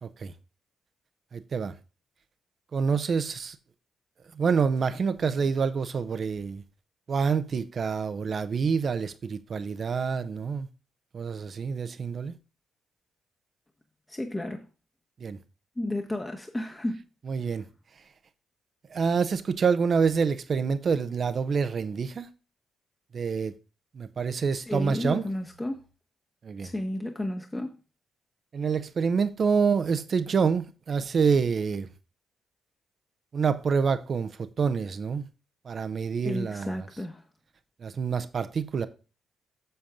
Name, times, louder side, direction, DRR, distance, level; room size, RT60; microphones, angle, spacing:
voice 1, 0.0-0.3 1.3-1.7 2.7-3.6 4.3-6.6 7.1-10.7 11.1-12.3 15.2-15.4 17.3-17.6 18.9-22.3 23.1-23.5 23.9-25.2 26.4-26.7 28.5-31.9 33.3-35.3 35.6-36.8 37.8-38.9, right 5 dB, 50° right, 1.0 m, -27 dB
voice 2, 14.1-14.7 15.8-17.0 24.5-25.8 26.6-27.7 36.2-37.2, left 1 dB, 20° left, 1.3 m, -32 dB
8.1 x 7.0 x 3.7 m
hypercardioid pair, 40°, 0 cm